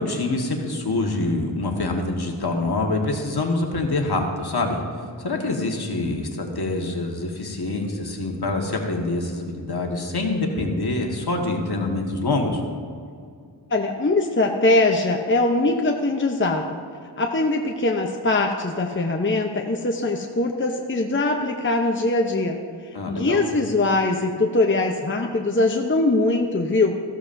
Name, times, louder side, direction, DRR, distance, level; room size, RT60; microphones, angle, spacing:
voice 1, 0.0-4.8 5.2-12.6 22.9-23.4, left 2 dB, 55° left, 1 dB, 1.6 m, -25 dB
voice 2, 13.7-16.8 17.2-22.6 23.1-26.9, left 2 dB, 25° left, 2 dB, 0.8 m, -22 dB
14.5 x 13.0 x 2.7 m, 2.3 s
wide cardioid pair, 85°, 45 cm